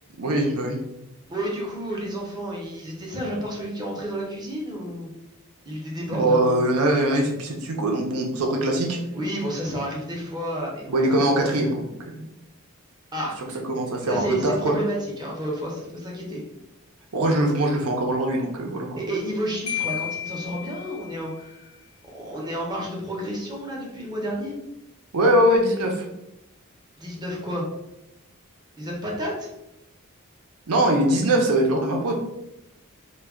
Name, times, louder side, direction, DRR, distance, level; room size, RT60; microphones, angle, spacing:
voice 1, 0.2-0.8 6.1-9.0 10.9-12.3 13.7-14.8 17.1-19.0 25.1-26.0 30.7-32.1, right 1 dB, 80° right, 2 dB, 0.6 m, -22 dB
voice 2, 1.3-5.1 5.6-6.7 9.1-11.1 13.1-13.4 14.1-16.4 19.0-21.7 22.1-24.6 27.0-27.7 28.8-29.5, equal, 20° right, -3 dB, 0.6 m, -30 dB
Marimba xylophone, 19.7-21.4, left 10 dB, 65° left, 0.4 m, -32 dB
2.2 x 2.2 x 3.5 m, 0.87 s
head